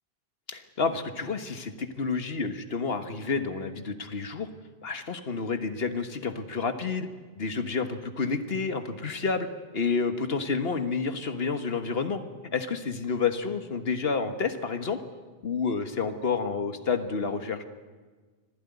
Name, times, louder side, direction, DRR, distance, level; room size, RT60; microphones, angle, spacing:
voice 1, 0.5-4.5 4.8-7.1 7.4-9.5 9.7-12.2 12.5-15.0 15.4-17.6, left 5 dB, 70° left, 8 dB, 1.7 m, -29 dB
25.0 x 16.0 x 9.5 m, 1.4 s
omnidirectional pair, 1.0 m